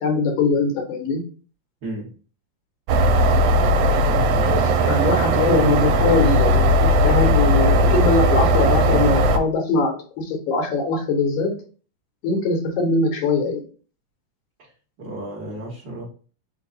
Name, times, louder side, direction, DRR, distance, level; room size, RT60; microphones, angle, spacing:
voice 1, 0.0-1.2 4.5-4.6 4.9-11.5 12.2-13.6, left 3 dB, 80° left, 1 dB, 2.5 m, -22 dB
sound 1, 2.9-9.4, right 1 dB, 80° right, 2.0 m, -17 dB
voice 2, 4.0-5.2 14.6-14.7 15.0-16.1, right 1 dB, 55° right, -6 dB, 1.3 m, -34 dB
5.0 x 2.3 x 3.9 m, 0.40 s
omnidirectional pair, 3.4 m